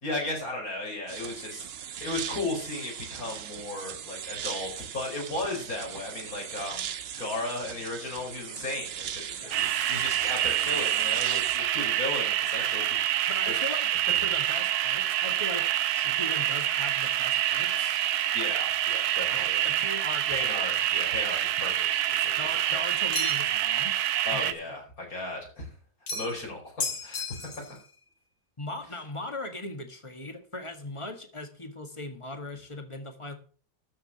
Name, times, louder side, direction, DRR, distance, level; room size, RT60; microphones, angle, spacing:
voice 1, 0.0-1.7 2.0-13.6 18.3-19.6 20.3-22.3 24.3-25.7 26.1-27.8, left 2 dB, 65° left, 0 dB, 5.2 m, -35 dB
sound 1, 1.1-11.6, right 9 dB, 55° right, 0.7 m, -39 dB
voice 2, 9.4-9.9 13.3-13.9 14.2-18.1 19.3-20.7 22.4-24.0 24.3-24.5 28.6-33.4, left 1 dB, 20° left, 6 dB, 1.6 m, -39 dB
sound 2, 9.5-24.5, right 12 dB, 80° right, 1.2 m, -27 dB
sound 3, 23.1-23.6 26.1-26.5 26.8-27.8, left 3 dB, 80° left, 2.8 m, -34 dB
13.0 x 5.1 x 7.4 m, 0.41 s
omnidirectional pair, 1.7 m